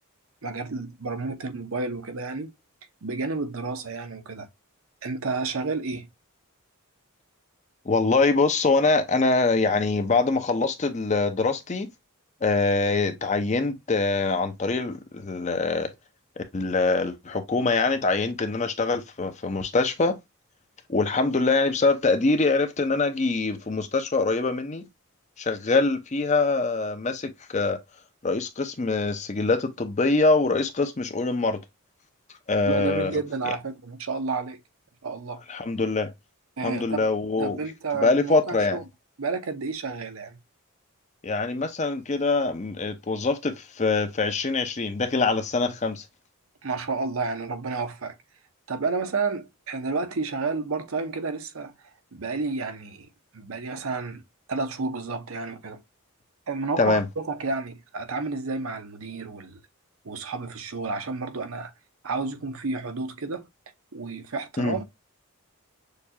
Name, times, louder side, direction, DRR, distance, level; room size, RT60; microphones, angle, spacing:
voice 1, 0.4-2.5 3.0-4.5 5.0-6.1 32.7-34.6 35.0-35.4 36.6-37.0 37.4-38.8 39.2-40.4 46.6-48.2 48.7-51.7 52.1-53.1 53.3-54.2 54.5-55.8 56.5-59.6 60.0-61.7 62.0-63.5 63.9-64.8, right 4 dB, 70° right, 0.7 m, -31 dB
voice 2, 7.8-11.9 12.4-15.9 16.4-20.2 20.9-24.9 25.4-27.8 28.2-31.6 32.5-33.1 35.5-36.1 36.6-37.6 38.0-38.8 41.2-46.0 56.8-57.0 64.6-64.8, left 3 dB, 35° left, 0.6 m, -24 dB
6.6 x 2.3 x 2.8 m
head